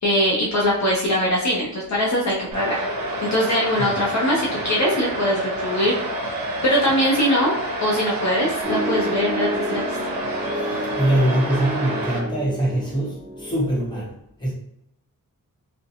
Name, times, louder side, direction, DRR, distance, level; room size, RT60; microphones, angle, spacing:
voice 1, 0.0-2.9 3.2-6.0 6.6-10.0, equal, 50° left, -4 dB, 0.6 m, -22 dB
sound 1, 2.5-12.2, right 1 dB, 75° right, 0.7 m, -28 dB
Piano, 8.6-13.6, right 1 dB, 30° right, 0.7 m, -30 dB
voice 2, 10.5-14.1 14.4-14.5, right 1 dB, 10° left, -6 dB, 1.0 m, -23 dB
2.6 x 2.1 x 2.6 m, 0.75 s
wide cardioid pair, 110°, 35 cm